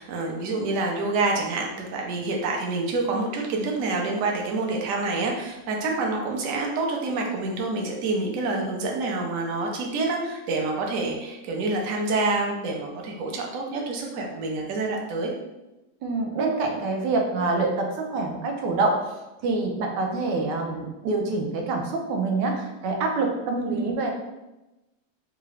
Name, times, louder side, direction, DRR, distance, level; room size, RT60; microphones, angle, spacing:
voice 1, 0.0-15.3 23.5-23.8, right 3 dB, 65° right, 0 dB, 0.9 m, -27 dB
voice 2, 16.0-24.1, right 3 dB, 85° right, 2 dB, 1.3 m, -26 dB
3.8 x 2.3 x 3.1 m, 1.0 s
omnidirectional pair, 1.8 m